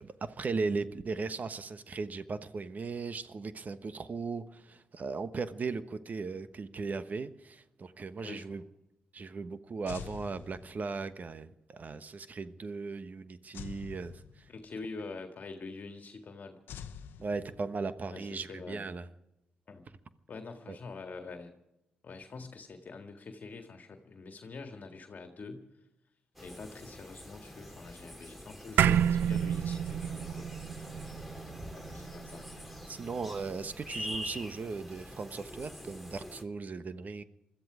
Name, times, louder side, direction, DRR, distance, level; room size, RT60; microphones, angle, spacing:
voice 1, 0.0-8.6 9.1-14.4 17.2-19.1 20.7-20.8 32.9-37.2, right 4 dB, 50° right, 12 dB, 1.2 m, -37 dB
sound 1, 9.9-11.1 13.5-14.8 16.7-18.0, left 8 dB, 80° left, 0.9 m, -46 dB
voice 2, 14.5-16.6 18.1-18.8 19.7-19.8 20.3-21.5 22.0-25.6 26.4-30.5 31.7-32.4, left 4 dB, 55° left, 5 dB, 1.8 m, -45 dB
sound 2, 26.4-36.4, equal, 5° right, 2.7 m, -45 dB
sound 3, 28.8-33.4, right 9 dB, 80° right, 0.5 m, -30 dB
21.0 x 13.5 x 5.0 m, 0.90 s
supercardioid pair, 50°, 3 cm